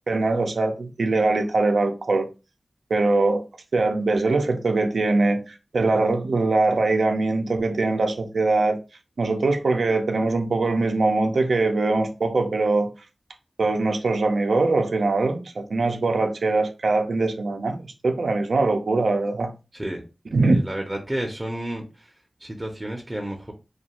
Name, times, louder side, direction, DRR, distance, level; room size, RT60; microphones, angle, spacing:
voice 1, 0.1-2.3 2.9-3.4 3.7-8.8 9.2-12.9 13.6-19.5 20.3-20.6, right 3 dB, 90° right, 0.4 m, -22 dB
voice 2, 20.5-22.1 22.4-23.5, right 1 dB, 25° right, 0.5 m, -31 dB
2.5 x 2.3 x 2.8 m
wide cardioid pair, 70°, 0 cm